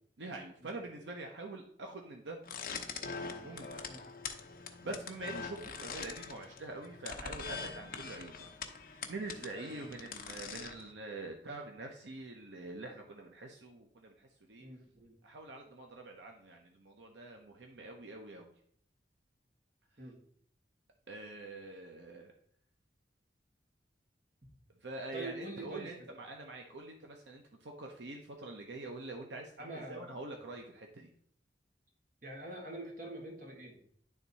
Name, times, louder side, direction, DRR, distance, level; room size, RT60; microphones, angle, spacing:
voice 1, 0.2-2.4 3.4-3.8 4.5-8.5 9.1-14.7 15.2-18.5 21.1-22.3 24.8-31.1, right 2 dB, 80° right, 2 dB, 0.8 m, -45 dB
sound 1, 2.4-10.9, left 5 dB, 50° left, 0.8 m, -44 dB
voice 2, 14.6-15.2 20.0-20.2 25.1-25.9 29.6-30.2 32.2-33.8, right 1 dB, 50° right, 0 dB, 1.7 m, -45 dB
10.0 x 3.6 x 4.1 m, 0.65 s
head